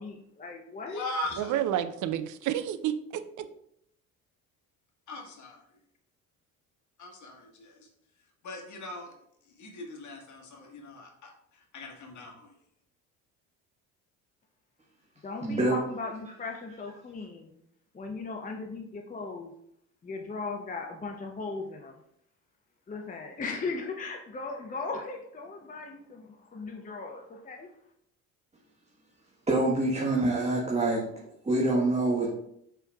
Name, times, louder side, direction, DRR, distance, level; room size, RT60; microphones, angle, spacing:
voice 1, 0.0-1.0 15.2-17.6 17.9-19.5 20.0-21.9 22.9-27.7, left 3 dB, 20° left, 1 dB, 0.7 m, -38 dB
voice 2, 0.9-1.7 5.1-5.6 7.0-7.9 8.4-9.1 9.6-12.5, left 2 dB, 40° left, 0 dB, 1.4 m, -40 dB
voice 3, 1.4-3.5, right 11 dB, 45° right, 11 dB, 0.5 m, -30 dB
voice 4, 15.4-15.8 29.5-31.1 31.4-32.3, right 2 dB, 15° right, -3 dB, 1.2 m, -25 dB
5.1 x 4.5 x 2.3 m, 0.72 s
hypercardioid pair, 55°, 43 cm